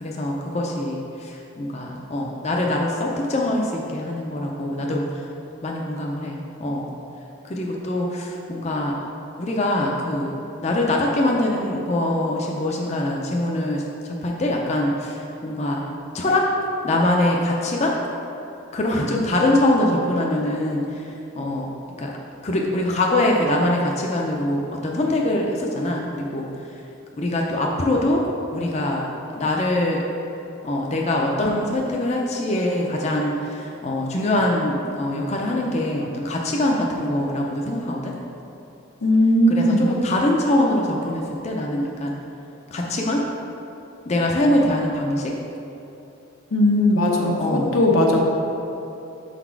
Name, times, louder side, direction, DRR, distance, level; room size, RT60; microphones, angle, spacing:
voice 1, 0.0-5.2 5.6-6.9 7.5-8.9 9.4-10.3 10.6-15.8 16.1-16.5 16.8-18.0 18.7-21.7 22.0-22.1 22.4-26.4 27.2-28.2 28.5-29.0 29.3-30.0 30.6-38.1 39.5-42.2 42.7-43.2 44.1-45.3 47.4-47.8, left 1 dB, 30° left, -1 dB, 0.5 m, -23 dB
voice 2, 39.0-39.9 46.5-48.2, left 1 dB, 85° left, -1 dB, 0.9 m, -18 dB
6.2 x 4.0 x 4.5 m, 2.9 s
head